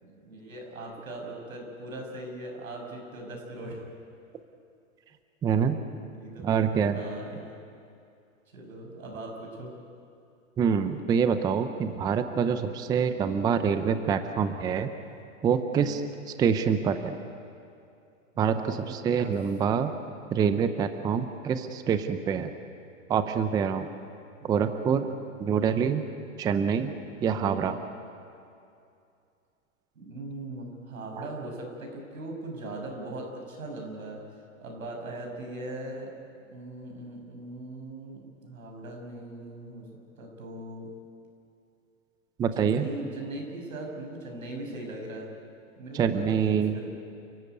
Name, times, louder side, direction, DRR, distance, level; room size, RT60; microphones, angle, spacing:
voice 1, 0.0-3.8 5.9-7.6 8.5-9.7 12.9-13.0 15.6-16.0 18.4-19.3 24.4-24.5 25.4-25.7 27.3-27.7 29.9-34.2 34.6-36.1 36.5-39.8 40.2-40.9 42.5-45.3 45.8-46.9, right 2 dB, 90° right, 2 dB, 7.0 m, -40 dB
voice 2, 5.4-5.8 6.4-7.0 10.6-14.9 15.4-16.0 16.4-17.2 18.4-19.9 20.3-22.5 23.1-23.9 24.4-25.1 25.4-26.1 26.4-26.9 27.2-27.8 31.2-31.3 42.4-42.9 45.9-46.7, right 7 dB, 10° right, 9 dB, 0.6 m, -26 dB
29.5 x 15.5 x 9.5 m, 2.5 s
hypercardioid pair, 140°, 40 cm